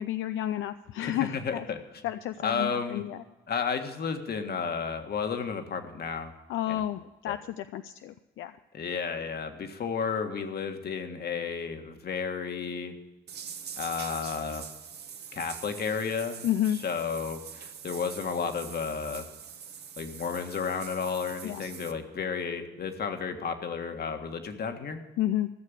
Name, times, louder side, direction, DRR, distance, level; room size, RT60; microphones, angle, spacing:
voice 1, 0.0-1.6 2.0-3.2 6.5-8.6 16.4-16.8 21.4-21.7 25.2-25.5, left 12 dB, 80° left, 10 dB, 0.5 m, -31 dB
voice 2, 1.0-1.8 2.4-3.0 3.5-6.3 6.7-6.8 7.3-7.4 8.7-12.9 13.8-14.7 15.3-16.5 16.8-19.3 20.0-25.0, left 6 dB, 55° left, 6 dB, 1.7 m, -32 dB
sound 1, 13.3-21.9, right 7 dB, 55° right, 1.2 m, -44 dB
14.0 x 6.6 x 9.9 m, 1.1 s
cardioid pair, 90°, 20 cm